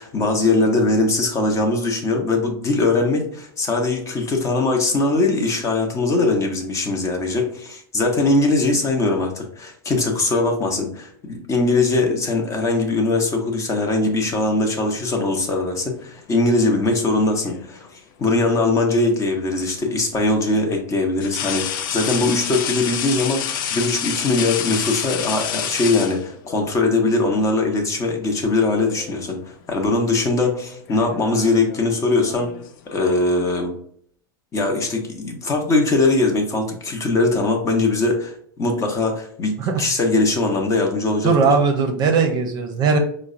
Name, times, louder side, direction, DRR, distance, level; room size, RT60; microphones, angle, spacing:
voice 1, 0.0-32.5 32.9-33.7 34.5-41.5, left 2 dB, 25° left, 3 dB, 0.8 m, -21 dB
sound 1, 16.9-17.8 19.5-19.7 21.2-26.7 27.9-28.1 28.5-29.2 29.5-29.9 30.7-33.3, left 9 dB, 65° left, 0.4 m, -29 dB
voice 2, 41.2-43.0, right 5 dB, 40° right, 5 dB, 0.6 m, -18 dB
4.4 x 2.1 x 2.5 m, 0.63 s
hypercardioid pair, 105°, 12 cm